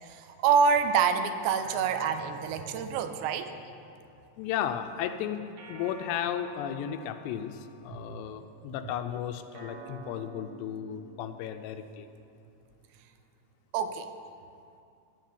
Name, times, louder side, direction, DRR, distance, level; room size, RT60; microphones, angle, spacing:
voice 1, 0.0-3.5 8.0-8.1 13.7-14.1, right 6 dB, 80° right, 9 dB, 2.8 m, -26 dB
sound 1, 1.6-4.2 5.6-8.1 9.5-12.1, right 2 dB, 60° right, 1.9 m, -48 dB
voice 2, 4.4-5.4 5.7-7.5 7.8-12.1, left 9 dB, 85° left, 8 dB, 2.7 m, -34 dB
14.5 x 5.5 x 9.1 m, 2.5 s
omnidirectional pair, 5.0 m